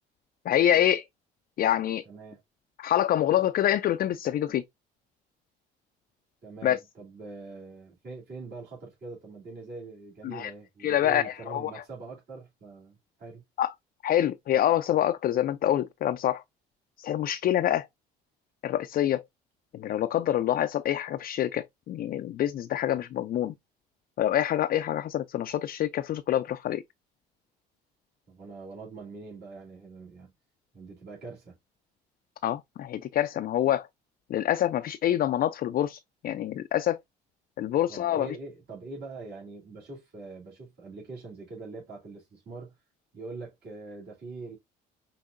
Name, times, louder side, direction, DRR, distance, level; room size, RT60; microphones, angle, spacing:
voice 1, 0.5-1.1 1.6-2.0 2.8-4.6 6.6-6.8 10.2-10.5 10.8-11.8 13.6-13.7 14.0-16.4 17.0-17.9 18.6-19.2 19.7-23.5 24.2-26.8 32.4-33.9 34.3-36.0 36.2-37.0 37.6-38.3, left 11 dB, 50° left, 0.4 m, -26 dB
voice 2, 2.0-2.4 6.4-13.4 28.3-30.3 30.7-31.6 37.9-42.7 43.1-44.6, right 3 dB, 55° right, 2.5 m, -43 dB
5.6 x 2.6 x 2.5 m
supercardioid pair, 70°, 20 cm